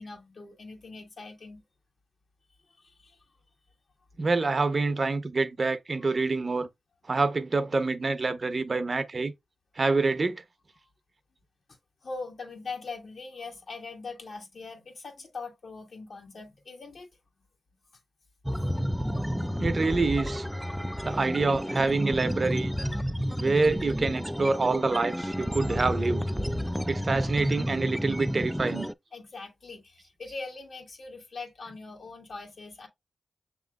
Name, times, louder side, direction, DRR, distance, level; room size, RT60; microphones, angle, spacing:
voice 1, 0.0-1.6 2.7-3.2 6.0-6.1 12.0-17.1 25.3-25.4 29.1-32.9, left 3 dB, 65° left, 1.6 m, -41 dB
voice 2, 4.2-6.7 7.1-9.3 9.8-10.4 19.6-20.5 21.0-22.7 23.4-26.2 26.9-28.9, right 3 dB, 50° right, 0.7 m, -26 dB
sound 1, 18.4-28.9, equal, ahead, 0.3 m, -31 dB
6.9 x 3.1 x 2.3 m
cardioid pair, 60°, 0 cm